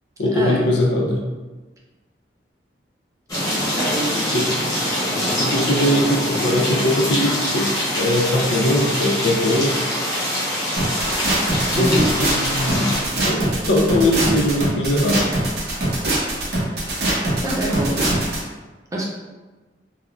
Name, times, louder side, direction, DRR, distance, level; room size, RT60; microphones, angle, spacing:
voice 1, 0.2-1.2 4.3-4.5 5.3-9.7 11.8-13.0 13.2-15.5, left 1 dB, 85° left, -1 dB, 0.5 m, -21 dB
sound 1, 3.3-13.0, equal, 20° left, 0.8 m, -24 dB
voice 2, 3.7-4.2 11.7-12.1 17.4-18.1 18.9-19.0, right 1 dB, 20° right, -3 dB, 0.5 m, -24 dB
sound 2, 10.8-18.4, right 1 dB, 65° right, 0.7 m, -22 dB
3.4 x 2.0 x 2.4 m, 1.2 s
head